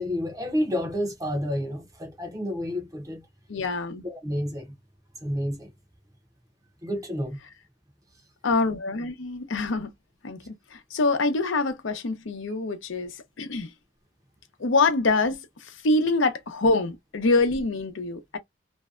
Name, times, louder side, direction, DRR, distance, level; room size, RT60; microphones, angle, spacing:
voice 1, 0.0-3.3 4.0-4.7 5.2-5.7 6.8-7.4, equal, 20° right, 0.6 m, -30 dB
voice 2, 3.5-4.0 8.4-9.9 10.2-13.7 14.6-18.4, left 3 dB, 85° left, 0.7 m, -25 dB
2.6 x 2.1 x 2.4 m
head